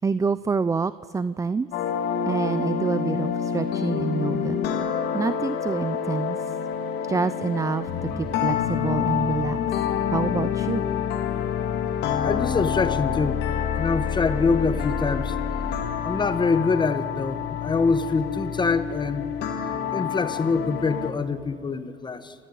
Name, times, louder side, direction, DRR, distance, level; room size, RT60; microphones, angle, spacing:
voice 1, 0.0-1.7 2.3-4.6 5.1-6.4 7.1-9.6 10.1-10.8, right 4 dB, 20° right, 15 dB, 0.5 m, -27 dB
sound 1, 1.7-21.1, left 8 dB, 85° left, 2.1 m, -27 dB
voice 2, 12.2-13.4 13.8-15.3 16.0-19.3 19.9-22.3, left 4 dB, 25° left, 11 dB, 1.4 m, -25 dB
27.5 x 14.5 x 9.2 m, 2.4 s
cardioid pair, 110°, 17 cm